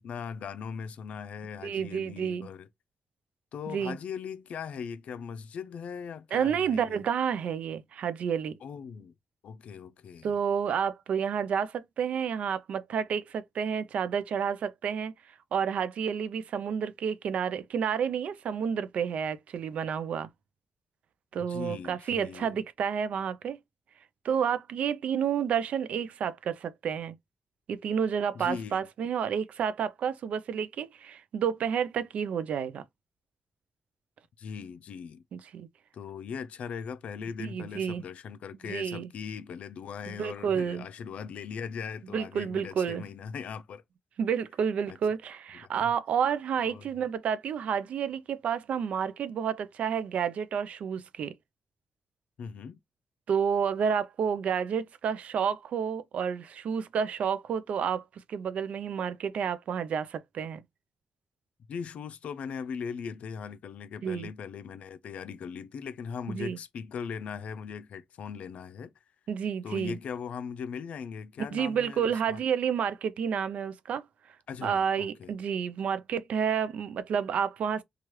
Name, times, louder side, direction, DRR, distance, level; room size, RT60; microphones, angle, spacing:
voice 1, 0.0-2.7 3.5-7.0 8.6-9.1 9.4-10.3 21.5-22.6 28.3-28.9 34.4-35.2 35.9-43.8 44.9-45.0 45.7-45.8 46.6-46.9 52.4-52.8 61.7-68.9 69.6-72.4 74.5-75.3, left 6 dB, 80° left, 0.4 m, -39 dB
voice 2, 1.6-2.5 3.7-4.0 6.3-8.6 10.2-15.1 15.5-20.3 21.3-23.6 24.2-27.2 27.7-32.8 35.3-35.7 37.4-38.0 38.7-39.1 40.2-40.8 42.1-43.0 44.2-51.3 53.3-60.6 64.0-64.3 66.3-66.6 69.3-70.0 71.5-74.0 74.6-77.8, right 7 dB, 80° right, 0.4 m, -30 dB
3.0 x 2.3 x 2.9 m
cardioid pair, 115°, 2 cm